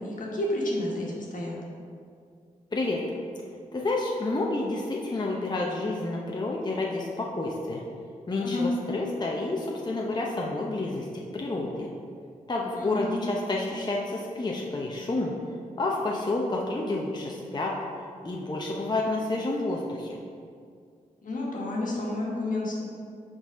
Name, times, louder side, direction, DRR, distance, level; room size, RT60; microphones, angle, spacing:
voice 1, 0.0-1.6 8.4-8.7 12.8-13.2 21.2-22.8, left 2 dB, 70° left, -4 dB, 1.5 m, -30 dB
voice 2, 2.7-3.0 3.7-7.8 8.3-11.1 11.3-11.9 12.5-15.3 15.8-17.7 18.2-20.2, left 2 dB, 30° left, -2 dB, 0.7 m, -29 dB
5.9 x 4.0 x 5.0 m, 2.3 s
cardioid pair, 55°, 14 cm